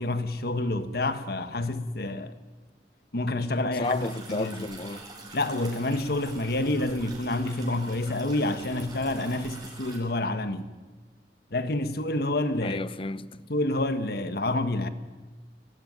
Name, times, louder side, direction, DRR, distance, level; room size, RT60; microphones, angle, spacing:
voice 1, 0.0-2.3 3.1-4.0 4.3-4.7 5.3-10.7 11.5-12.8 13.5-14.9, left 2 dB, 60° left, 1.5 m, -28 dB
voice 2, 3.7-5.1 12.6-13.3, left 2 dB, 30° left, 0.7 m, -32 dB
sound 1, 3.8-10.0, right 2 dB, 25° right, 6.2 m, -45 dB
23.0 x 18.5 x 9.6 m
head